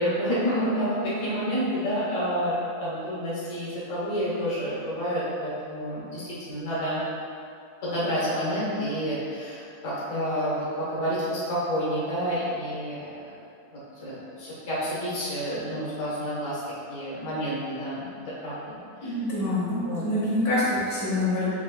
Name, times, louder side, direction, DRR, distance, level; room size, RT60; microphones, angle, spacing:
voice 1, 0.0-7.0 7.8-13.3 13.7-16.6 16.9-18.1 18.4-19.1 19.8-20.0, equal, 60° left, -10 dB, 1.6 m, -29 dB
voice 2, 19.0-21.5, left 1 dB, 75° left, -10 dB, 1.7 m, -26 dB
6.1 x 3.0 x 2.3 m, 2.4 s
omnidirectional pair, 1.7 m